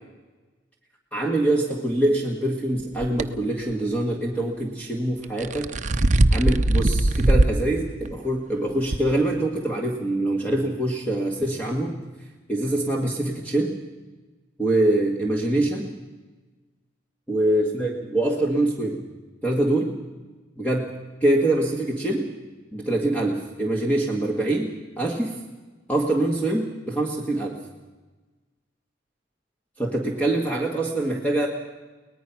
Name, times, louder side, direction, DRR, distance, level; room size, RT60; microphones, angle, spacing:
voice 1, 1.1-5.7 6.3-12.0 12.5-13.7 14.6-15.9 17.3-19.0 19.4-19.9 20.6-20.9 21.2-22.3 22.7-25.4 25.9-27.6 29.8-31.5, right 1 dB, 10° left, 0 dB, 1.9 m, -24 dB
sound 1, 3.0-3.2 5.2-7.6 8.1-8.2 8.9-9.0, right 1 dB, 40° right, 0.8 m, -20 dB
23.5 x 19.0 x 6.0 m, 1.2 s
head